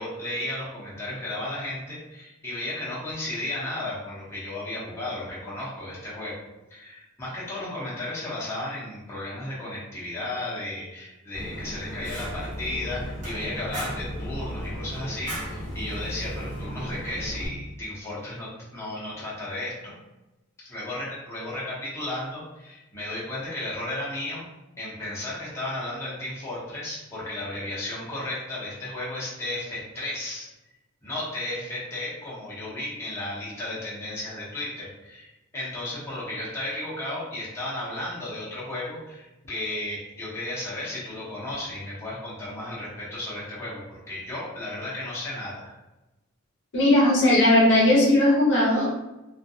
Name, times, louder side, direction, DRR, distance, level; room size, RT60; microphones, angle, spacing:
voice 1, 0.0-6.4 6.7-20.0 20.6-24.4 24.8-30.5 31.0-45.7 48.7-48.9, left 1 dB, 10° left, -9 dB, 0.7 m, -34 dB
Fire, 11.3-17.5, equal, 35° right, 0.9 m, -35 dB
voice 2, 46.7-48.9, left 1 dB, 55° left, -5 dB, 0.7 m, -18 dB
2.3 x 2.2 x 2.6 m, 1.0 s
head